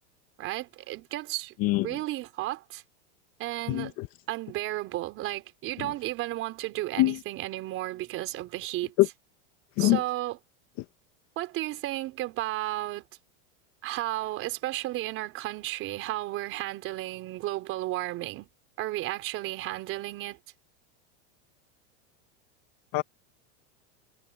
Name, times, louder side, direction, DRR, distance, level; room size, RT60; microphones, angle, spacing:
voice 1, 0.4-1.5 1.8-2.8 3.4-3.9 4.3-8.9 9.8-10.4 11.4-13.0 13.8-18.5 18.8-20.4, right 16 dB, 35° right, 4.7 m, -33 dB
voice 2, 1.6-2.0 3.7-4.1 5.8-5.9 7.0-7.2 9.0-9.1 9.8-10.0 22.9-23.0, left 19 dB, 40° left, 2.3 m, -24 dB
supercardioid pair, 160°, 36 cm